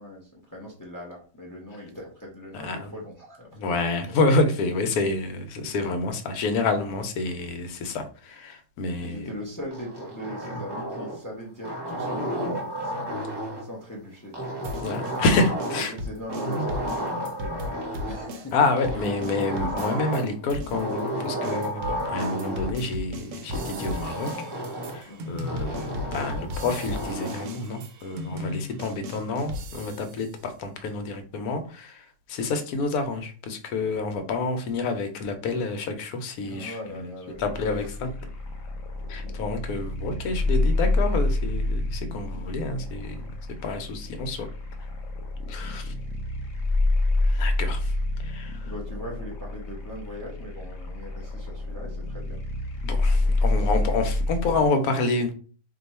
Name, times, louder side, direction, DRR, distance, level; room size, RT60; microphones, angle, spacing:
voice 1, 0.0-3.9 9.0-14.7 15.8-18.7 25.0-25.4 36.4-38.1 39.0-39.4 44.0-44.3 45.6-45.7 46.0-46.1 48.6-52.4 53.1-53.7, left 1 dB, 25° left, -1 dB, 0.4 m, -41 dB
voice 2, 2.5-2.9 3.5-9.3 14.8-15.9 16.6-16.7 18.5-24.3 24.9-36.8 37.4-38.1 39.1-43.3 43.6-44.5 45.5-45.9 47.2-47.9 48.2-48.7 52.8-55.3, left 3 dB, 85° left, 7 dB, 1.1 m, -28 dB
sound 1, 9.7-11.3 11.6-13.7 14.3-16.0 16.3-18.3 18.8-20.3 20.7-22.7 23.5-25.0 25.5-27.5, right 1 dB, 25° right, 0.5 m, -32 dB
sound 2, 14.6-20.2 20.5-30.2, left 2 dB, 70° right, 0.8 m, -36 dB
sound 3, 37.4-54.7, left 2 dB, 65° left, 1.0 m, -28 dB
2.7 x 2.3 x 4.1 m, 0.39 s
omnidirectional pair, 1.6 m